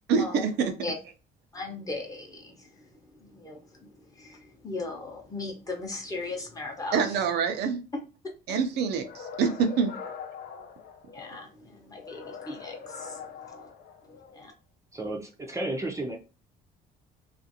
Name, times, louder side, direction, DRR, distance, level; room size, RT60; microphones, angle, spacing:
voice 1, 0.1-0.7 6.9-7.8 8.5-9.9, right 6 dB, 75° right, 0.5 m, -26 dB
voice 2, 1.5-2.5 3.3-3.6 4.2-7.0 8.5-8.6 11.1-13.2 14.3-14.5, left 3 dB, 20° left, 0.8 m, -37 dB
sound 1, 9.0-11.4 12.0-14.4, left 6 dB, 70° left, 0.6 m, -43 dB
voice 3, 14.9-16.2, right 1 dB, 15° right, 0.5 m, -32 dB
2.5 x 2.4 x 2.7 m
cardioid pair, 110°, 17 cm